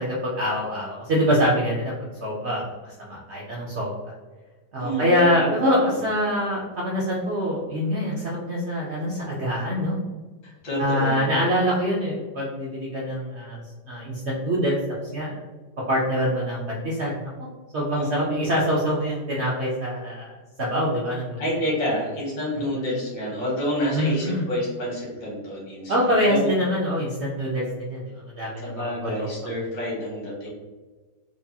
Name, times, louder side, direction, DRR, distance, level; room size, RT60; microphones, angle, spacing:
voice 1, 0.0-3.9 4.7-10.0 10.8-14.8 15.1-15.5 15.9-17.3 17.7-21.4 23.9-24.5 25.9-29.3, equal, 85° right, -4 dB, 0.6 m, -25 dB
voice 2, 4.8-6.0 10.6-11.5 17.9-18.5 21.4-26.5 28.6-30.5, equal, 75° left, -5 dB, 2.1 m, -29 dB
4.6 x 2.3 x 2.7 m, 1.3 s
omnidirectional pair, 2.0 m